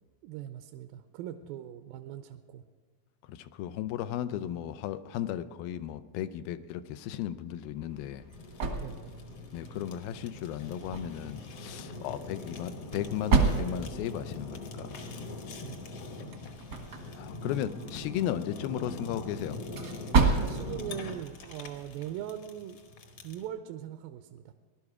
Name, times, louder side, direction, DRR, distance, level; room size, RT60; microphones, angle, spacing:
voice 1, 0.2-2.6 8.8-9.2 15.6-15.8 20.0-22.8 23.2-24.5, right 11 dB, 80° right, 8 dB, 2.3 m, -41 dB
voice 2, 3.3-8.3 9.5-15.0 17.2-19.6, left 11 dB, 85° left, 12 dB, 2.4 m, -35 dB
sound 1, 7.7-22.2, right 4 dB, 60° right, 1.1 m, -33 dB
Fire, 8.3-23.5, left 2 dB, 60° left, 1.6 m, -43 dB
19.0 x 11.5 x 4.8 m, 1.4 s
omnidirectional pair, 4.2 m